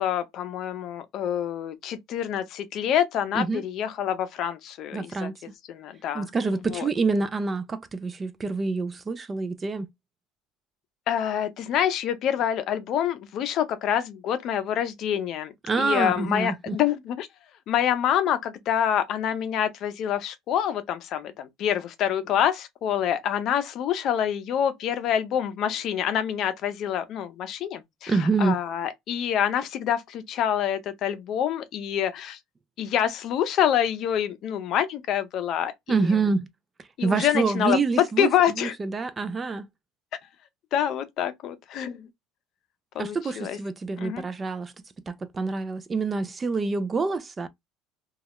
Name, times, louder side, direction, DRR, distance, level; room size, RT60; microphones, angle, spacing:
voice 1, 0.0-5.3 5.7-6.3 6.7-6.9 11.1-17.3 17.7-32.4 32.8-36.2 37.0-38.7 40.7-42.1 42.9-43.6 44.0-44.2, left 9 dB, 50° left, 0.5 m, -26 dB
voice 2, 4.9-5.3 6.1-9.9 15.7-16.8 28.1-28.6 35.9-36.5 37.0-39.7 43.0-44.7 45.1-47.5, right 4 dB, 20° right, 0.3 m, -26 dB
2.3 x 2.0 x 2.8 m
supercardioid pair, 115°, 0 cm